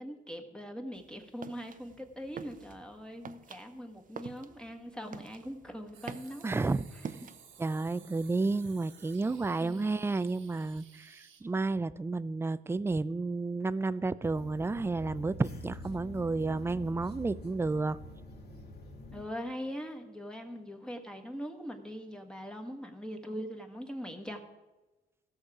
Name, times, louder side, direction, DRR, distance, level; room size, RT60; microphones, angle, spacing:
voice 1, 0.0-6.4 7.2-7.3 9.6-9.9 19.1-24.4, equal, 5° left, 3 dB, 1.4 m, -41 dB
sound 1, 0.9-7.9, right 6 dB, 45° right, 0.7 m, -48 dB
sound 2, 5.9-11.4, right 7 dB, 85° right, 1.6 m, -57 dB
voice 2, 6.4-6.8 7.6-18.0, right 3 dB, 10° right, 16 dB, 0.4 m, -31 dB
sound 3, 14.2-19.2, left 2 dB, 55° left, 2.0 m, -46 dB
15.5 x 6.4 x 4.8 m, 1.1 s
cardioid pair, 90°, 20 cm